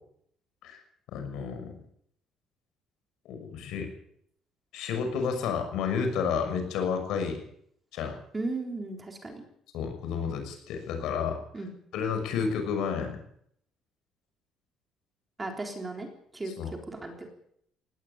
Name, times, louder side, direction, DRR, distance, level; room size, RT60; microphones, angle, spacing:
voice 1, 1.1-1.8 3.2-3.9 4.7-7.4 7.9-8.1 9.7-11.4 11.9-13.2 16.6-16.7, left 6 dB, 70° left, 6 dB, 6.1 m, -31 dB
voice 2, 8.3-9.4 11.5-11.7 15.4-16.1 16.3-17.3, right 2 dB, 15° right, 3 dB, 3.7 m, -36 dB
19.0 x 18.0 x 8.8 m, 0.71 s
cardioid pair, 165°, 0 cm